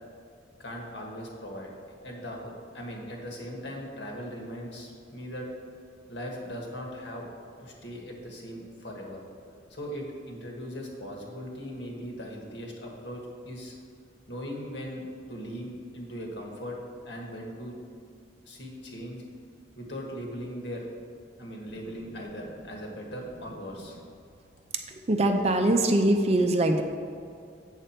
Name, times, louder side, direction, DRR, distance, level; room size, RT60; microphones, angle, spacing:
voice 1, 0.6-1.7 2.0-5.5 6.1-7.3 7.6-9.2 9.7-13.8 14.3-15.0 15.3-16.8 17.0-17.7 18.4-19.2 19.8-20.8 21.4-24.0, equal, 70° left, 0 dB, 1.5 m, -39 dB
voice 2, 24.9-26.8, right 1 dB, 35° right, 5 dB, 0.5 m, -23 dB
8.1 x 6.6 x 4.4 m, 2.3 s
head